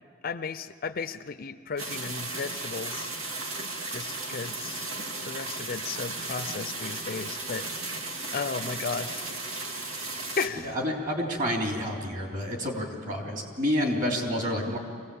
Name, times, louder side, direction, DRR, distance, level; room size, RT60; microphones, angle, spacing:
voice 1, 0.2-3.1 3.9-4.9 5.3-7.7 8.3-9.2 10.4-10.7, left 5 dB, 45° left, 12 dB, 0.5 m, -34 dB
sound 1, 1.8-10.5, right 3 dB, 90° right, 2.2 m, -35 dB
voice 2, 10.6-14.8, equal, 40° right, 0 dB, 3.3 m, -29 dB
24.0 x 17.0 x 8.5 m, 2.2 s
head